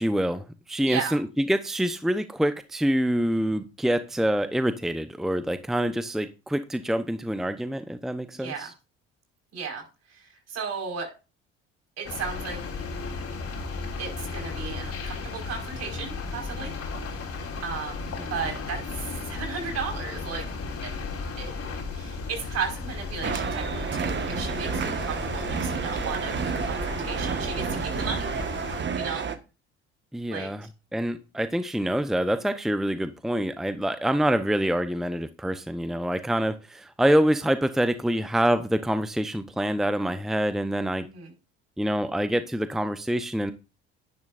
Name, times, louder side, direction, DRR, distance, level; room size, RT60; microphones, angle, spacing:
voice 1, 0.0-8.7 18.1-18.3 30.1-30.7 30.9-41.1 41.8-43.5, equal, ahead, 11 dB, 0.8 m, -26 dB
voice 2, 0.8-1.2 8.4-8.7 9.5-9.8 10.1-11.1 12.0-12.6 14.0-16.8 17.6-18.1 18.3-20.5 20.8-20.9 21.4-21.5 21.9-28.3 28.9-29.3 30.3-30.7 41.0-41.3, right 5 dB, 55° right, 3 dB, 5.1 m, -35 dB
sound 1, 12.0-28.8, left 4 dB, 50° left, 3.7 m, -35 dB
sound 2, 23.2-29.4, right 6 dB, 35° right, 1.5 m, -30 dB
11.0 x 10.5 x 2.6 m, 0.30 s
hypercardioid pair, 65°, 30 cm